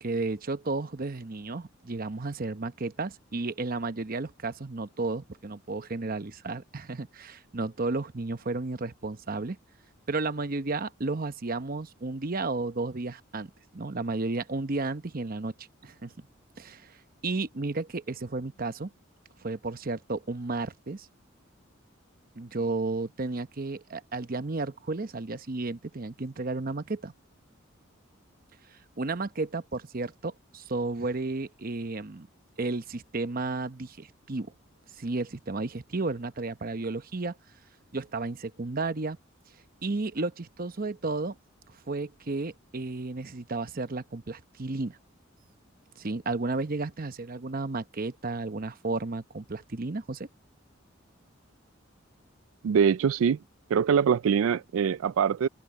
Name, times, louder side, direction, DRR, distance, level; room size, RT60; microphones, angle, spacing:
voice 1, 0.0-9.6 10.1-16.1 16.6-17.0 17.2-18.9 19.4-21.1 22.4-27.1 29.0-32.3 32.6-34.5 35.0-37.3 37.9-39.2 39.8-41.3 41.9-45.0 46.0-50.3, right 3 dB, 45° right, 0.9 m, -33 dB
voice 2, 52.6-53.4 53.7-55.5, right 7 dB, 80° right, 0.3 m, -23 dB
head